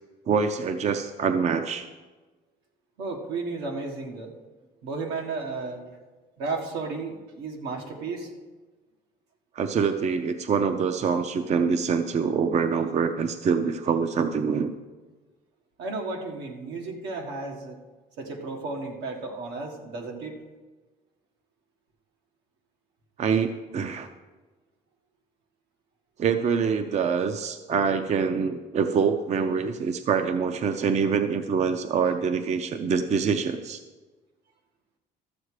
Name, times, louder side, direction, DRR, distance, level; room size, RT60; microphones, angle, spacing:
voice 1, 0.3-1.9 9.5-14.7 23.2-24.1 26.2-33.8, right 6 dB, 40° right, 8 dB, 0.6 m, -25 dB
voice 2, 3.0-4.3 4.8-5.9 6.4-8.3 15.8-17.8 18.2-20.4, right 3 dB, 85° right, 1 dB, 1.7 m, -33 dB
13.5 x 7.2 x 4.9 m, 1.3 s
cardioid pair, 110°, 17 cm